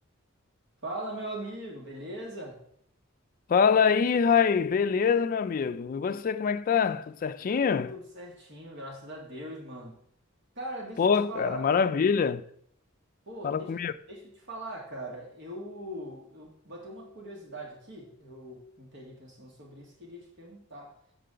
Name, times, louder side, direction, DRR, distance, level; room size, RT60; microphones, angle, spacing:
voice 1, 0.8-2.6 7.4-10.0 10.6-11.0 11.3-11.8 13.3-13.7 14.1-21.0, right 1 dB, 60° right, 1.8 m, -41 dB
voice 2, 3.5-7.9 11.0-12.4 13.4-13.9, left 6 dB, 40° left, 0.3 m, -24 dB
7.4 x 6.7 x 3.8 m
head